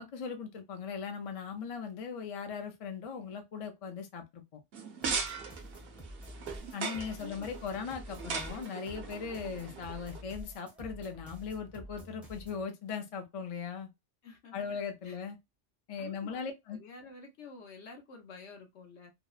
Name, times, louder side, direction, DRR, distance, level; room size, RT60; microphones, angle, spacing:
voice 1, 0.0-4.6 6.7-13.9 14.5-15.4 15.9-16.8, left 6 dB, 50° left, 0.4 m, -39 dB
sound 1, 4.7-10.2, right 5 dB, 60° right, 0.7 m, -39 dB
sound 2, 5.0-12.6, equal, ahead, 0.5 m, -48 dB
voice 2, 7.2-7.5 14.2-14.8 15.0-15.2 16.0-19.1, left 4 dB, 75° left, 1.1 m, -50 dB
2.8 x 2.0 x 2.3 m
omnidirectional pair, 1.2 m